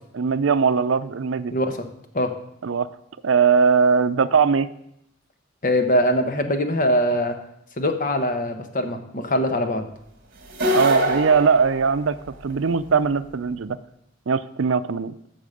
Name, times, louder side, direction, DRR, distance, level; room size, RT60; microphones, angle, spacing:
voice 1, 0.1-1.5 2.6-2.9 3.2-4.7 10.7-12.2 12.4-13.8 14.3-15.1, right 5 dB, 80° right, 13 dB, 0.5 m, -20 dB
voice 2, 5.6-7.4 7.8-9.9, equal, 45° left, 6 dB, 1.2 m, -22 dB
sound 1, 10.5-12.5, equal, 50° right, 1.9 m, -24 dB
15.0 x 6.1 x 5.0 m, 0.77 s
head